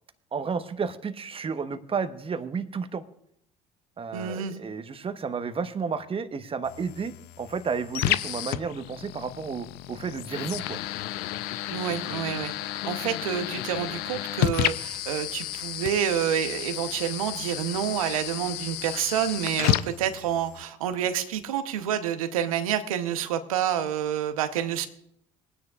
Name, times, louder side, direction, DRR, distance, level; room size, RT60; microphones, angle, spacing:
voice 1, 0.3-3.0 4.0-10.8, right 5 dB, 30° right, 10 dB, 1.0 m, -32 dB
voice 2, 4.1-4.6 11.7-24.9, right 9 dB, 85° right, 10 dB, 0.8 m, -28 dB
sound 1, 6.6-20.6, left 14 dB, 70° left, 0.5 m, -32 dB
22.0 x 9.8 x 2.4 m, 0.71 s
hypercardioid pair, 60°, 17 cm